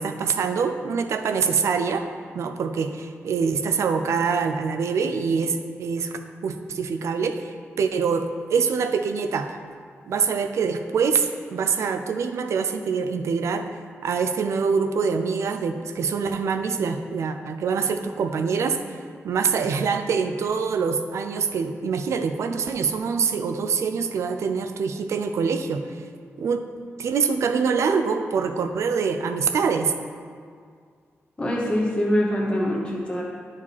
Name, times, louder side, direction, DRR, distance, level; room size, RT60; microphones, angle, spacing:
voice 1, 0.0-2.0 2.3-7.5 7.8-9.6 10.1-13.7 14.0-19.0 19.2-25.8 26.4-26.7 27.0-29.9, right 5 dB, 85° right, 7 dB, 0.5 m, -25 dB
voice 2, 31.4-33.2, equal, 20° left, -4 dB, 1.1 m, -24 dB
10.5 x 4.9 x 4.2 m, 2.1 s
wide cardioid pair, 125°, 5 cm